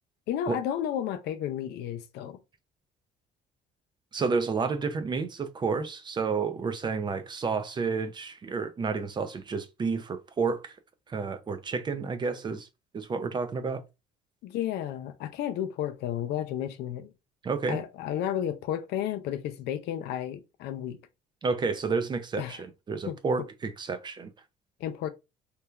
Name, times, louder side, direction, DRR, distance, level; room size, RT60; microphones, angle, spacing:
voice 1, 0.3-2.4 14.4-17.1 17.7-21.0 22.4-22.6 23.1-23.2 24.8-25.1, left 10 dB, 80° left, 0.4 m, -32 dB
voice 2, 4.1-10.7 11.1-12.7 12.9-13.8 17.4-17.8 21.4-24.3, right 4 dB, 25° right, 0.4 m, -30 dB
3.1 x 2.2 x 2.2 m
cardioid pair, 110°, 17 cm